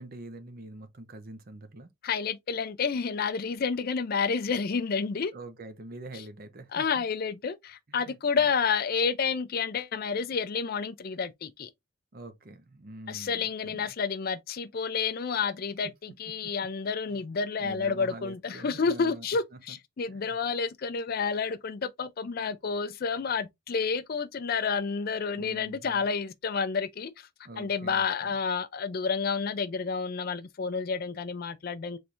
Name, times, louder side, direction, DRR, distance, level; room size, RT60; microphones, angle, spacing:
voice 1, 0.0-1.9 5.3-7.1 7.9-8.5 12.1-13.9 16.4-16.5 17.1-17.2 17.6-19.3 19.7-19.8 20.1-20.4 25.3-26.1 27.4-28.4, right 2 dB, 45° right, 0.6 m, -45 dB
voice 2, 2.0-5.3 6.7-11.7 13.1-27.3 27.6-32.0, left 5 dB, 45° left, 0.4 m, -30 dB
4.3 x 3.2 x 2.5 m
head